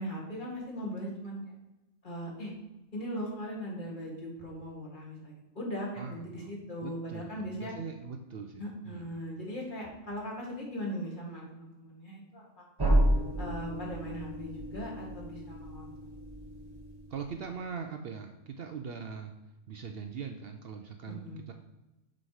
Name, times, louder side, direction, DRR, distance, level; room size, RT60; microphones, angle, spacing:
voice 1, 0.0-1.4 2.0-2.5 2.9-7.7 8.6-12.5 12.8-12.9 13.4-15.9 21.1-21.4, equal, 40° left, -2 dB, 1.8 m, -39 dB
voice 2, 6.0-6.6 6.8-9.1 17.1-19.3 19.7-21.5, right 6 dB, 60° right, 5 dB, 0.7 m, -41 dB
sound 1, 12.8-17.5, right 1 dB, 25° right, 0.7 m, -31 dB
6.1 x 4.9 x 4.8 m, 0.99 s
omnidirectional pair, 1.3 m